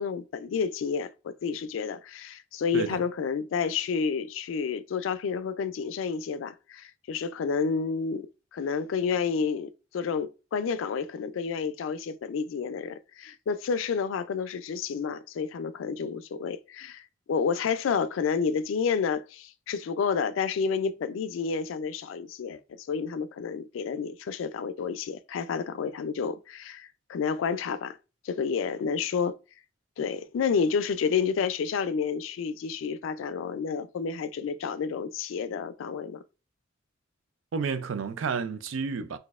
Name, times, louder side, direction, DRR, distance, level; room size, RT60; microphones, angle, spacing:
voice 1, 0.0-28.0 28.2-29.4 30.0-36.2, left 6 dB, 85° left, 0.3 m, -30 dB
voice 2, 37.5-39.2, right 5 dB, 90° right, 0.4 m, -30 dB
3.9 x 2.6 x 2.4 m
head